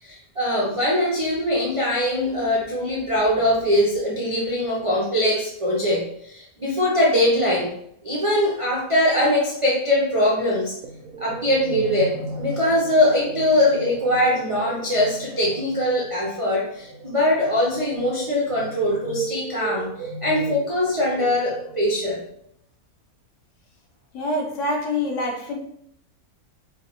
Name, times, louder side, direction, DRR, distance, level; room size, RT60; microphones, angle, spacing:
voice 1, 0.0-7.7 8.0-10.7 11.2-19.9 20.2-22.2, left 1 dB, 45° right, -4 dB, 0.4 m, -22 dB
sound 1, 10.8-22.2, right 3 dB, 85° right, 1.1 m, -36 dB
voice 2, 24.1-25.6, left 1 dB, 65° left, 1 dB, 0.9 m, -25 dB
4.6 x 2.3 x 2.8 m, 0.72 s
omnidirectional pair, 1.6 m